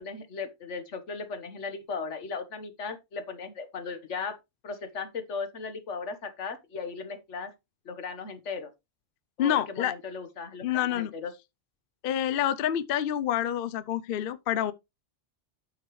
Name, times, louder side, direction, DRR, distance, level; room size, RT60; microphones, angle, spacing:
voice 1, 0.0-4.4 4.6-7.5 7.9-8.7 9.4-11.3, left 5 dB, 85° left, 1.6 m, -37 dB
voice 2, 9.4-9.9 10.6-11.1 12.0-14.7, left 10 dB, 60° left, 0.7 m, -27 dB
8.9 x 7.4 x 3.1 m
omnidirectional pair, 1.2 m